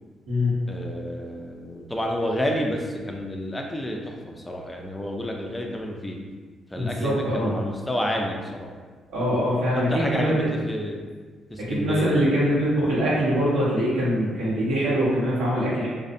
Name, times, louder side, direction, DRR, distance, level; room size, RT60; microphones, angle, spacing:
voice 1, 0.7-6.2 6.7-8.7 9.7-11.0 11.5-12.2, equal, 15° left, 0 dB, 0.3 m, -29 dB
voice 2, 6.8-7.5 9.1-9.9 10.1-10.5 11.6-15.9, equal, 85° right, -7 dB, 0.8 m, -23 dB
2.4 x 2.0 x 2.5 m, 1.4 s
cardioid pair, 90°, 0 cm